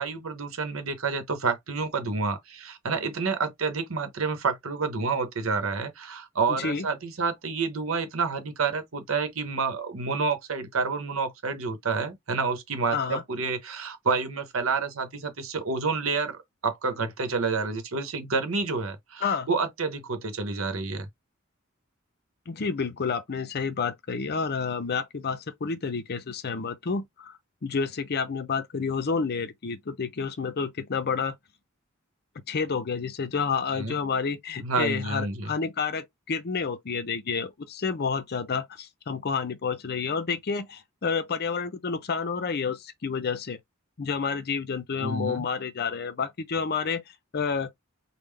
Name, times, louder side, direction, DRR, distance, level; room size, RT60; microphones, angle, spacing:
voice 1, 0.0-21.1 33.7-34.0 34.6-35.5 45.0-45.5, right 4 dB, 75° right, 0.9 m, -29 dB
voice 2, 12.9-13.2 19.2-19.5 22.5-31.3 32.5-43.6 44.0-47.0 47.3-47.7, left 5 dB, 50° left, 0.6 m, -29 dB
3.6 x 2.2 x 3.3 m
head